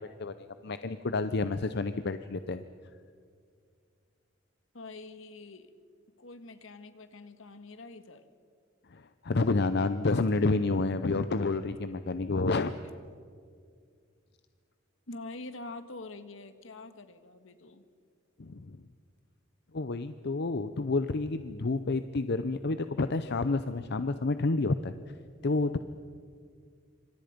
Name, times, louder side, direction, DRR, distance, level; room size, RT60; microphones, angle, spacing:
voice 1, 0.0-2.6 8.9-12.7 18.4-18.8 19.7-24.9 25.4-25.8, left 3 dB, 55° left, 11 dB, 0.7 m, -29 dB
voice 2, 4.7-5.7 6.2-8.2 15.1-17.8, left 2 dB, 75° left, 10 dB, 1.6 m, -45 dB
27.5 x 26.0 x 5.2 m, 2.2 s
head